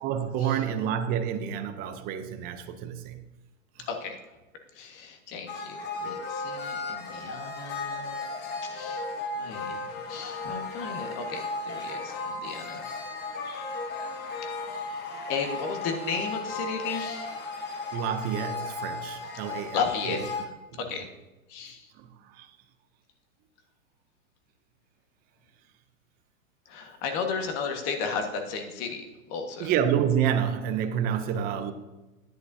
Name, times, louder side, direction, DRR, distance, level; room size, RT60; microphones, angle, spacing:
voice 1, 0.0-3.2 3.8-3.9 17.9-20.2 22.3-22.5 29.6-31.7, right 8 dB, 20° right, 8 dB, 0.5 m, -28 dB
voice 2, 3.9-4.2 4.7-8.2 8.6-9.1 9.3-12.9 15.3-17.3 17.6-17.7 19.7-21.1 21.5-21.9 26.6-29.7, left 5 dB, 40° left, 4 dB, 1.5 m, -34 dB
sound 1, 5.5-20.4, left 3 dB, 25° left, 1.1 m, -35 dB
11.0 x 10.0 x 2.7 m, 1.1 s
hypercardioid pair, 135°, 42 cm